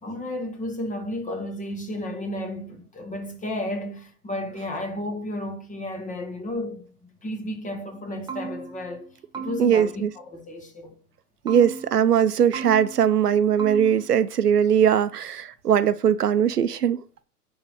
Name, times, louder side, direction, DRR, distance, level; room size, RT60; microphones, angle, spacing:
voice 1, 0.0-9.1 9.3-11.0, left 1 dB, 15° left, 1.9 m, -33 dB
sound 1, 7.9-8.0 8.3-9.0 9.3-10.0 11.5-12.2 12.5-13.2 13.6-14.1, right 5 dB, 10° right, 0.6 m, -36 dB
voice 2, 9.6-10.1 11.4-17.0, right 8 dB, 80° right, 0.8 m, -20 dB
9.9 x 4.1 x 6.4 m
figure-of-eight pair, 100°, 46 cm